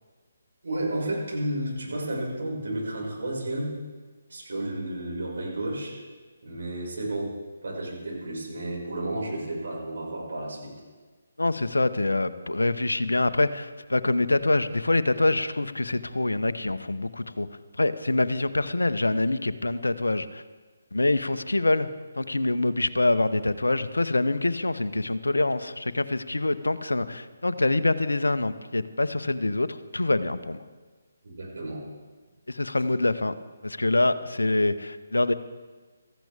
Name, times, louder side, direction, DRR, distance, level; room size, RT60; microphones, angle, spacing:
voice 1, 0.6-3.8 4.3-6.0 6.4-7.3 7.6-10.7 31.2-31.8, right 1 dB, 55° right, -4 dB, 5.6 m, -32 dB
voice 2, 11.4-17.5 17.8-20.4 20.9-21.9 22.2-30.6 32.5-33.3 33.6-35.3, left 2 dB, 75° left, 12 dB, 0.7 m, -25 dB
18.0 x 14.5 x 3.5 m, 1.3 s
figure-of-eight pair, 145°, 0 cm